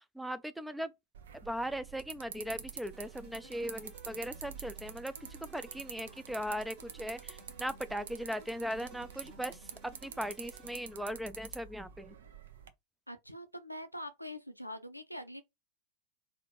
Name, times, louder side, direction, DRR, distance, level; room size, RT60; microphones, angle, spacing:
voice 1, 0.2-0.9 1.4-5.1 5.4-9.6 9.8-12.1, equal, 5° right, 0.4 m, -38 dB
sound 1, 1.1-12.7, right 8 dB, 60° right, 0.5 m, -48 dB
sound 2, 2.8-11.2, right 3 dB, 45° right, 1.6 m, -57 dB
voice 2, 13.1-15.4, left 1 dB, 90° left, 0.5 m, -44 dB
4.1 x 2.5 x 3.0 m
figure-of-eight pair, 90°, 0 cm